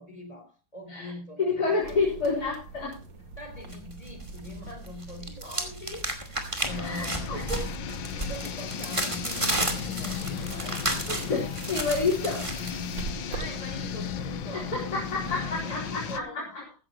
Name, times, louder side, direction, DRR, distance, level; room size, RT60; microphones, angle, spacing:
voice 1, 0.0-2.4 3.4-7.3 8.2-10.9 13.3-14.7 15.3-16.5, left 1 dB, 20° left, 5 dB, 4.0 m, -43 dB
voice 2, 1.4-3.0 6.8-7.6 10.0-10.3 11.1-12.4 14.5-16.6, left 4 dB, 50° left, -6 dB, 4.9 m, -29 dB
sound 1, 1.8-15.4, right 4 dB, 75° right, 2.8 m, -43 dB
sound 2, 3.7-4.6 4.9-12.7, right 1 dB, 15° right, 2.4 m, -32 dB
sound 3, 6.6-16.2, left 7 dB, 75° left, 1.7 m, -35 dB
15.5 x 15.0 x 3.0 m, 0.29 s
omnidirectional pair, 2.0 m